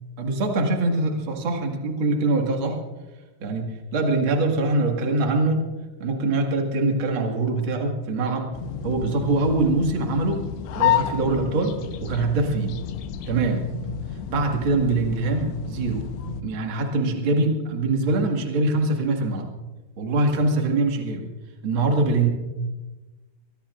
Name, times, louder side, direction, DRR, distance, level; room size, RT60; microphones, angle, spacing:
voice 1, 0.2-2.8 3.4-5.7 6.0-8.5 8.8-10.5 10.7-12.7 13.3-13.7 14.3-16.1 16.4-19.5 20.0-21.3 21.6-22.3, right 2 dB, 50° right, 2 dB, 1.6 m, -23 dB
sound 1, 8.5-16.4, left 10 dB, 75° left, 2.8 m, -30 dB
24.0 x 21.0 x 2.6 m, 1.2 s
omnidirectional pair, 5.3 m